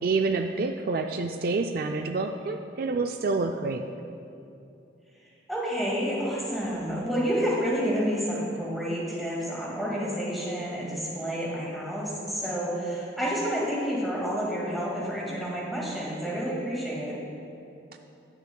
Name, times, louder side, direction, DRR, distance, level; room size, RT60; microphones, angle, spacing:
voice 1, 0.0-3.9, right 3 dB, 50° right, 5 dB, 0.3 m, -28 dB
voice 2, 5.5-17.2, equal, ahead, -6 dB, 2.0 m, -29 dB
19.5 x 6.9 x 2.3 m, 2.7 s
head